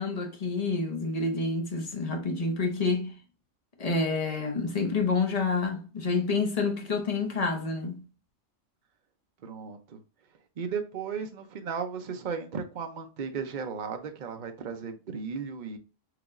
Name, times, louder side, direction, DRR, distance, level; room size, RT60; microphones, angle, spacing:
voice 1, 0.0-3.1 3.8-8.0, left 4 dB, 35° left, 0.8 m, -28 dB
voice 2, 9.4-10.0 10.6-15.8, right 6 dB, 45° right, 0.6 m, -35 dB
4.7 x 2.9 x 2.5 m
omnidirectional pair, 1.4 m